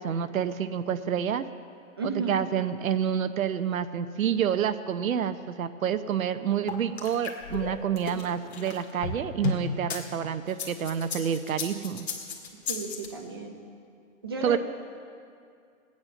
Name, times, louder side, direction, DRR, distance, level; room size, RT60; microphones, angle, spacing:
voice 1, 0.0-1.5 2.3-12.1 14.4-14.6, right 8 dB, 80° right, 10 dB, 0.8 m, -28 dB
voice 2, 2.0-2.4 12.7-13.6 14.2-14.6, right 3 dB, 20° right, 2 dB, 0.7 m, -33 dB
sound 1, 6.7-10.0 10.5-13.1, left 5 dB, 50° left, 2.0 m, -34 dB
18.0 x 9.6 x 6.3 m, 2.3 s
hypercardioid pair, 180°, 41 cm